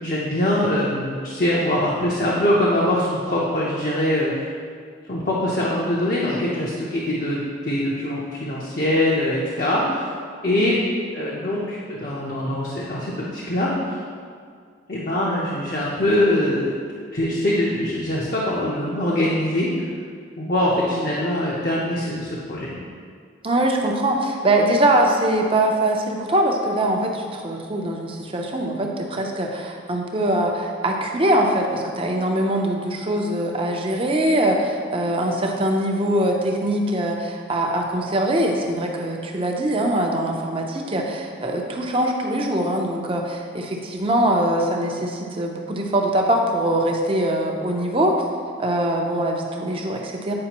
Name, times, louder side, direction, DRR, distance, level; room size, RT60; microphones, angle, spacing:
voice 1, 0.0-4.3 5.1-10.0 10.4-10.8 11.1-14.0 14.9-16.7 17.1-19.9 20.4-22.8, left 1 dB, 45° left, -5 dB, 0.7 m, -23 dB
voice 2, 23.4-48.2 48.6-50.3, right 1 dB, 30° right, 1 dB, 0.6 m, -22 dB
8.6 x 5.0 x 3.0 m, 2.1 s
head